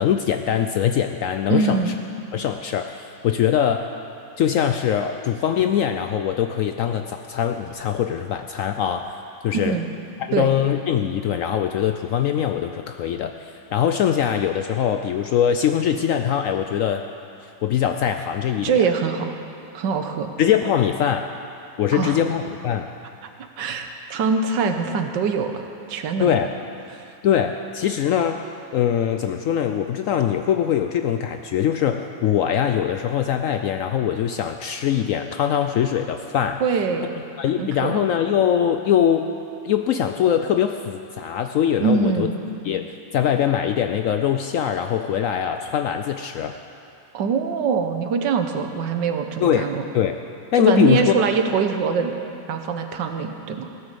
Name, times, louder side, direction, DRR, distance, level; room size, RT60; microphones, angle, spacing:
voice 1, 0.0-1.8 2.3-3.9 4.4-9.1 9.4-9.7 10.2-17.0 17.6-18.8 20.4-21.3 21.8-22.9 26.2-26.5 27.2-28.4 28.7-36.6 37.4-39.3 39.6-42.3 42.6-46.6 49.4-49.7 49.9-50.2 50.5-51.1, left 9 dB, 80° left, 6 dB, 0.7 m, -22 dB
voice 2, 1.5-1.9 9.5-9.9 10.3-10.5 18.6-19.3 19.7-20.3 21.9-22.2 23.6-26.4 36.6-37.2 37.6-38.1 41.8-42.4 47.1-49.9 50.5-52.1 52.5-53.7, right 5 dB, 85° right, 6 dB, 1.6 m, -23 dB
16.0 x 9.6 x 6.8 m, 2.7 s
omnidirectional pair, 1.9 m